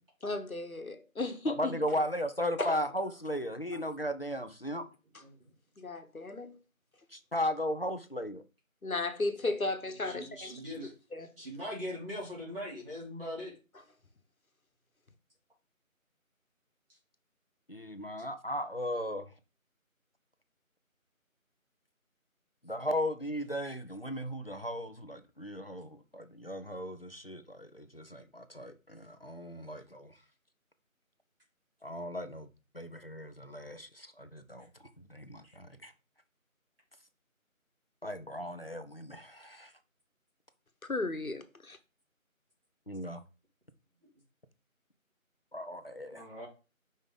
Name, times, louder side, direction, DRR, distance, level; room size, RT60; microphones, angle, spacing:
voice 1, 0.2-1.8 2.6-2.9 3.7-3.8 5.8-6.6 8.8-10.6 11.1-11.3 40.9-41.8, left 2 dB, 75° left, 1.3 m, -35 dB
voice 2, 1.6-4.9 7.1-8.4 10.1-10.2 17.7-19.3 22.6-30.1 31.8-32.5 32.7-34.7 35.1-35.9 38.0-39.7 42.9-43.2 45.5-46.3, equal, 45° left, 0.7 m, -36 dB
voice 3, 10.0-10.9 11.4-13.5 35.4-35.5 46.1-46.5, left 1 dB, 40° right, 3.4 m, -41 dB
5.2 x 4.8 x 4.0 m
figure-of-eight pair, 175°, 42 cm